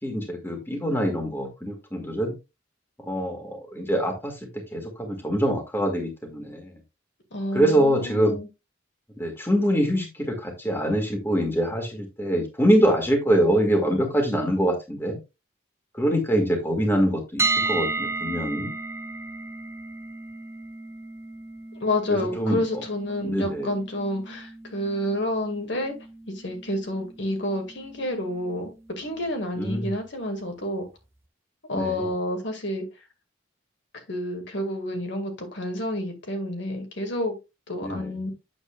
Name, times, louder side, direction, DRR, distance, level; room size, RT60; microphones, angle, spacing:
voice 1, 0.0-2.3 3.0-6.7 7.5-8.4 9.2-15.2 15.9-18.7 22.1-22.8 23.2-23.7 29.6-29.9 31.7-32.1 37.8-38.1, equal, 10° left, 3 dB, 1.7 m, -24 dB
voice 2, 7.3-8.5 21.8-25.9 26.3-30.8 31.7-32.9 34.1-37.4 37.7-38.3, left 1 dB, 65° left, 4 dB, 1.9 m, -29 dB
sound 1, 17.4-29.3, right 3 dB, 15° right, 0.5 m, -34 dB
8.7 x 7.0 x 2.3 m, 0.25 s
head